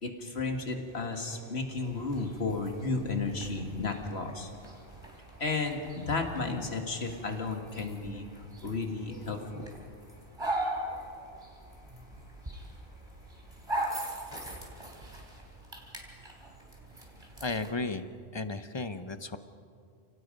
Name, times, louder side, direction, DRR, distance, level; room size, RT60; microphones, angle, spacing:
voice 1, 0.0-4.5 5.4-9.7, left 3 dB, 85° left, 3 dB, 2.3 m, -33 dB
sound 1, 1.8-17.7, right 1 dB, 25° right, 3.6 m, -41 dB
voice 2, 17.4-18.1 18.3-19.4, left 3 dB, 30° left, 10 dB, 0.8 m, -34 dB
29.5 x 18.0 x 5.3 m, 2.3 s
omnidirectional pair, 1.1 m